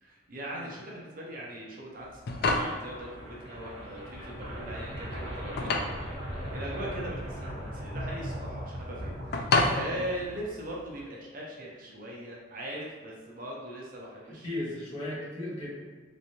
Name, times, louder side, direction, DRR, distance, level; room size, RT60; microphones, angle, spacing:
voice 1, 0.0-5.9 6.5-14.5, right 1 dB, 45° right, -4 dB, 0.6 m, -40 dB
sound 1, 2.0-11.0, left 2 dB, 55° left, 0.3 m, -32 dB
sound 2, 2.7-10.6, equal, 90° right, 1.1 m, -39 dB
voice 2, 14.4-15.7, left 1 dB, 30° left, -9 dB, 1.2 m, -36 dB
3.4 x 3.1 x 2.7 m, 1.4 s
head